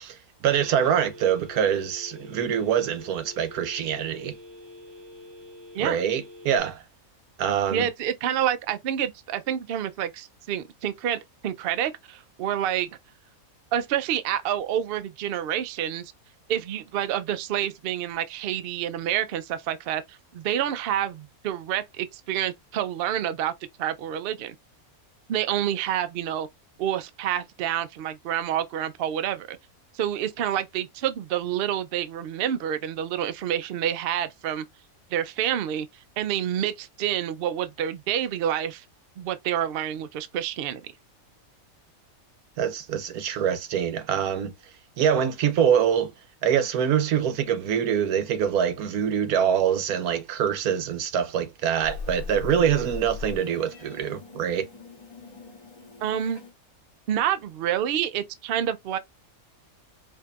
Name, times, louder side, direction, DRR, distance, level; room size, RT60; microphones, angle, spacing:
voice 1, 0.0-4.3 5.8-6.8 7.4-7.8 42.6-44.5 45.0-46.1 46.4-54.6, right 8 dB, 90° right, 1.2 m, -24 dB
Telephone, 0.6-6.6, left 2 dB, 20° right, 0.8 m, -46 dB
voice 2, 7.7-12.9 13.7-16.1 16.5-23.5 23.8-24.5 25.3-26.5 26.8-29.6 29.9-34.6 35.1-38.8 39.2-40.8 56.0-56.4 57.1-59.0, right 10 dB, 70° right, 0.5 m, -28 dB
Meow, 51.8-56.5, left 5 dB, 25° left, 1.0 m, -40 dB
4.7 x 2.6 x 2.3 m
omnidirectional pair, 1.5 m